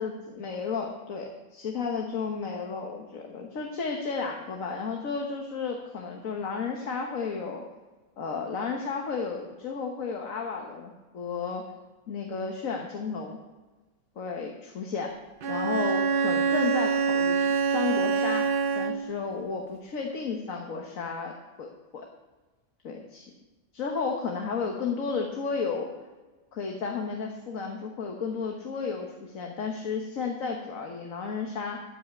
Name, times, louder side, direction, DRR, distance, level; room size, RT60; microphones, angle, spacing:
voice 1, 0.0-7.6 8.2-11.6 12.1-13.4 14.2-15.1 15.5-21.3 21.6-22.1 22.8-23.3 23.7-25.9 26.5-31.8, left 5 dB, 65° left, 2 dB, 1.5 m, -33 dB
Bowed string instrument, 15.4-19.2, right 6 dB, 50° right, 0.7 m, -25 dB
13.5 x 5.6 x 8.1 m, 1.3 s
omnidirectional pair, 1.5 m